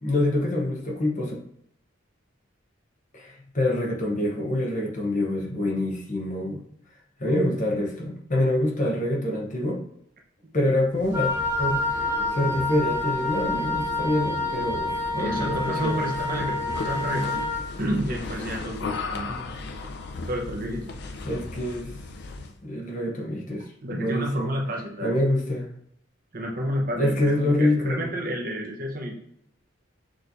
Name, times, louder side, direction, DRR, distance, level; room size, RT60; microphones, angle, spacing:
voice 1, 0.0-1.4 3.1-6.6 7.2-9.8 10.5-12.1 12.3-16.0 19.3-19.5 21.2-21.9 22.6-24.5 25.0-25.7 27.0-28.1, left 1 dB, 40° left, -1 dB, 1.0 m, -26 dB
sound 1, 10.9-22.6, left 3 dB, 55° left, 0.4 m, -37 dB
Wind instrument woodwind instrument, 11.1-17.7, left 2 dB, 15° right, 1.7 m, -28 dB
voice 2, 15.2-17.5 17.8-19.3 20.3-20.9 23.8-25.2 26.3-29.1, equal, 45° right, 0 dB, 1.0 m, -30 dB
6.3 x 3.2 x 2.7 m, 0.72 s
head